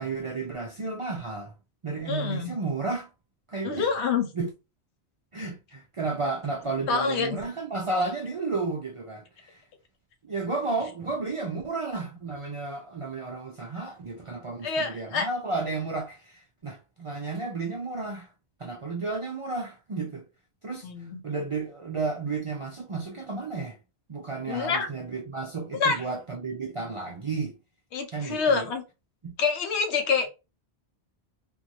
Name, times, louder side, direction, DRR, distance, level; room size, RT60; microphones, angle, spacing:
voice 1, 0.0-1.5 1.8-3.1 3.5-3.9 4.3-4.5 5.3-9.6 10.2-18.3 18.6-20.3 20.6-20.9 21.2-23.8 24.1-27.6 28.1-28.7 29.2-29.3, right 3 dB, 50° right, 0.4 m, -32 dB
voice 2, 2.1-2.5 3.6-4.3 6.9-7.3 14.6-15.3 20.8-21.2 24.5-24.9 25.8-26.0 27.9-28.8 29.4-30.3, left 5 dB, 85° left, 1.0 m, -26 dB
2.6 x 2.6 x 2.8 m
omnidirectional pair, 1.1 m